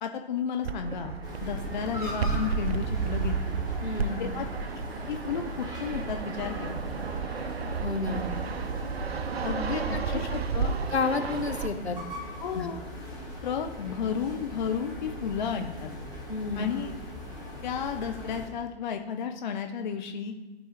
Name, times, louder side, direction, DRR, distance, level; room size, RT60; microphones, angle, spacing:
voice 1, 0.0-3.6 4.2-4.4 5.1-6.8 9.4-10.7 12.4-12.8 13.4-15.9 16.6-16.9 17.6-20.3, left 7 dB, 45° left, 5 dB, 0.6 m, -33 dB
Fixed-wing aircraft airplane, 0.6-11.7, right 5 dB, 70° right, 0.5 m, -32 dB
sound 1, 1.2-18.5, left 1 dB, 15° right, 1.5 m, -40 dB
voice 2, 3.8-4.3 7.8-8.3 9.7-10.0 10.9-12.0 12.5-12.7 16.3-16.7, left 4 dB, 80° left, 7 dB, 0.9 m, -30 dB
12.0 x 4.6 x 3.3 m, 1.2 s
figure-of-eight pair, 120°, 32 cm